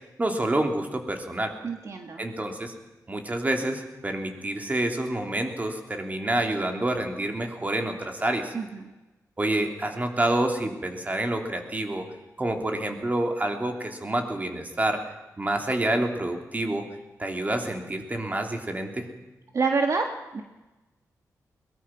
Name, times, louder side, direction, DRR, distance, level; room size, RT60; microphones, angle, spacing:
voice 1, 0.2-1.5 2.2-2.7 3.1-8.5 9.4-12.1 12.4-15.0 15.4-16.9 17.2-19.1, right 1 dB, 25° right, 4 dB, 3.1 m, -28 dB
voice 2, 1.6-2.3 8.5-8.9 19.5-20.4, right 4 dB, 55° right, 4 dB, 1.6 m, -27 dB
22.0 x 19.5 x 6.0 m, 1.1 s
wide cardioid pair, 95°, 6 cm